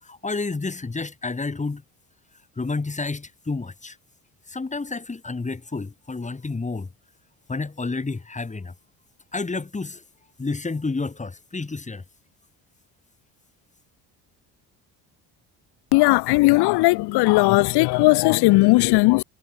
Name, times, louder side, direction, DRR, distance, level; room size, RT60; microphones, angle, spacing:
voice 1, 0.0-1.8 2.6-4.0 4.5-6.9 7.5-8.7 9.3-10.0 10.4-12.0, left 3 dB, 20° left, 2.2 m, -30 dB
voice 2, 15.9-19.2, left 22 dB, 75° left, 0.5 m, -17 dB
cardioid pair, 100°, 40 cm